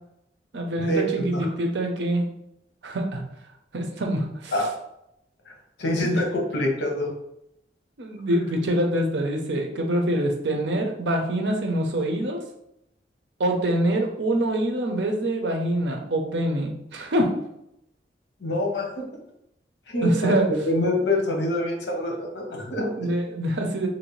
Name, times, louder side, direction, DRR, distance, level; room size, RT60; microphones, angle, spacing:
voice 1, 0.5-2.3 2.8-3.2 3.7-4.6 6.0-6.2 8.0-12.4 13.4-17.3 20.0-20.5 23.0-23.9, right 1 dB, 75° right, 2 dB, 0.6 m, -25 dB
voice 2, 5.8-7.1 18.4-18.9 19.9-20.4 20.6-23.1, left 1 dB, 80° left, 0 dB, 1.0 m, -25 dB
3.2 x 2.6 x 3.1 m, 0.80 s
head